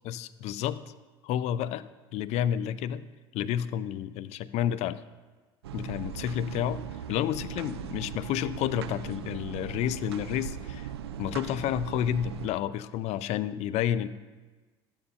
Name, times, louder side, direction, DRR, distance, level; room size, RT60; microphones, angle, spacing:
voice 1, 0.1-0.8 1.2-1.9 2.1-3.0 3.3-5.0 5.7-10.9 11.2-14.1, left 10 dB, 55° left, 15 dB, 0.4 m, -30 dB
sound 1, 5.6-12.5, right 9 dB, 85° right, 0.4 m, -39 dB
12.0 x 8.7 x 2.8 m, 1.3 s
hypercardioid pair, 75°, 13 cm